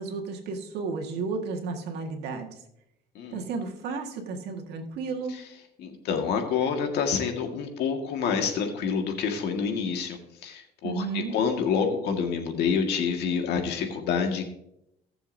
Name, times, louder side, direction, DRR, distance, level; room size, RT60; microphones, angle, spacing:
voice 1, 0.0-2.6 3.3-5.4 10.8-11.3, right 4 dB, 80° right, 2 dB, 1.7 m, -33 dB
voice 2, 5.8-14.5, left 6 dB, 80° left, 4 dB, 1.8 m, -27 dB
18.0 x 7.0 x 2.7 m, 0.79 s
cardioid pair, 110°, 17 cm